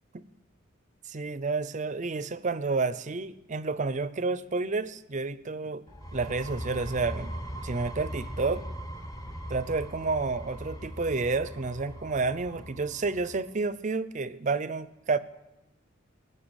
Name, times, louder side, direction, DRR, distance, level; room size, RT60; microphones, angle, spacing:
voice 1, 1.1-5.8 6.1-7.3 7.6-8.6 9.5-15.2, right 3 dB, 35° right, 15 dB, 0.6 m, -30 dB
sound 1, 5.9-13.5, equal, 20° left, 1.0 m, -40 dB
20.0 x 6.8 x 8.8 m, 0.97 s
head